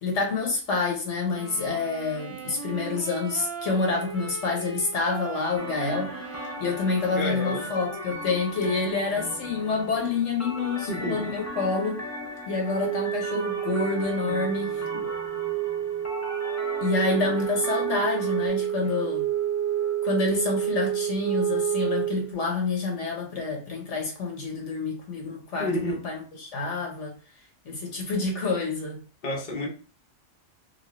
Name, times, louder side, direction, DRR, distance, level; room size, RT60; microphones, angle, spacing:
voice 1, 0.0-12.0 12.5-14.8 16.8-19.3 20.0-27.2 27.6-29.0, left 3 dB, 70° left, 1.3 m, -28 dB
sound 1, 1.2-8.1, right 4 dB, 25° right, 1.2 m, -39 dB
sound 2, 5.6-18.5, left 1 dB, 25° left, 0.3 m, -38 dB
voice 2, 7.1-7.6 10.9-11.3 25.6-26.0 29.2-29.7, left 1 dB, 40° left, 0.9 m, -29 dB
Wind instrument woodwind instrument, 12.6-22.3, right 10 dB, 45° right, 0.5 m, -29 dB
4.2 x 2.3 x 3.0 m
omnidirectional pair, 1.3 m